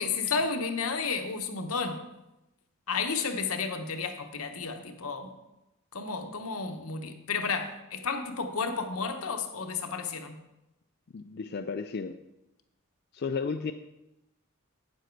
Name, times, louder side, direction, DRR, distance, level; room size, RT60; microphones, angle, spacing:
voice 1, 0.0-2.0 2.9-5.3 5.9-10.4, left 5 dB, 80° left, 1.0 m, -32 dB
voice 2, 11.1-12.1 13.1-13.7, left 5 dB, 50° left, 0.4 m, -33 dB
8.8 x 7.5 x 4.6 m
head